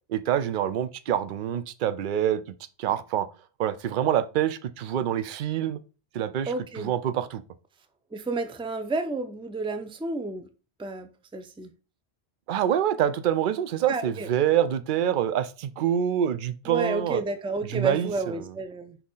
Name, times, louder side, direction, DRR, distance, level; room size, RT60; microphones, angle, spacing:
voice 1, 0.1-2.4 2.8-3.3 3.6-5.8 6.1-7.4 12.5-17.2 17.7-18.1, right 10 dB, 60° right, 0.7 m, -26 dB
voice 2, 6.5-6.9 8.1-10.5 10.8-11.7 13.9-14.3 16.7-19.0, right 3 dB, 5° right, 0.4 m, -31 dB
6.4 x 2.9 x 5.4 m
omnidirectional pair, 1.1 m